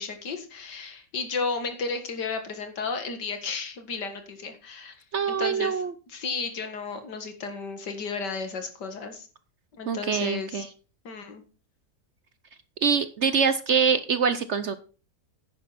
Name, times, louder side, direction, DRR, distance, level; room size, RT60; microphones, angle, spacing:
voice 1, 0.0-5.0 5.3-9.3 9.7-10.6 11.0-11.4, left 4 dB, 90° left, 7 dB, 2.4 m, -33 dB
voice 2, 5.1-5.9 9.9-10.7 12.8-14.8, right 6 dB, 55° right, 12 dB, 0.8 m, -24 dB
10.0 x 9.7 x 4.2 m, 0.36 s
omnidirectional pair, 1.8 m